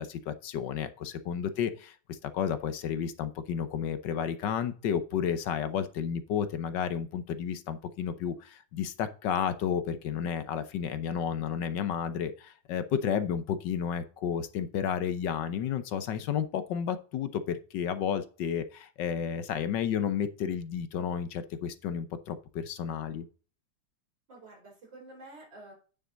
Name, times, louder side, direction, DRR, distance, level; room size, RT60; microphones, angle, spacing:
voice 1, 0.0-23.2, left 8 dB, 75° left, 12 dB, 1.4 m, -32 dB
voice 2, 24.3-25.7, right 2 dB, 75° right, -1 dB, 5.1 m, -50 dB
9.4 x 6.4 x 3.9 m, 0.36 s
omnidirectional pair, 2.0 m